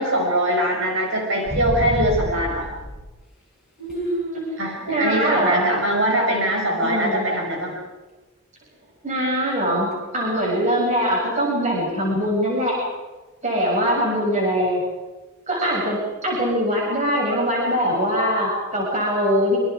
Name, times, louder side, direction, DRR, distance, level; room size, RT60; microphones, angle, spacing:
voice 1, 0.0-2.7 4.6-7.8, right 1 dB, 60° right, 0 dB, 6.0 m, -22 dB
sound 1, 1.5-3.1 3.9-4.1 9.9-10.0, equal, ahead, 7.1 m, -28 dB
voice 2, 3.8-4.4 4.9-5.7 6.8-7.3 9.0-12.8 13.4-14.8 15.5-19.6, equal, 35° right, -3 dB, 7.0 m, -22 dB
27.0 x 25.5 x 4.8 m, 1.2 s
head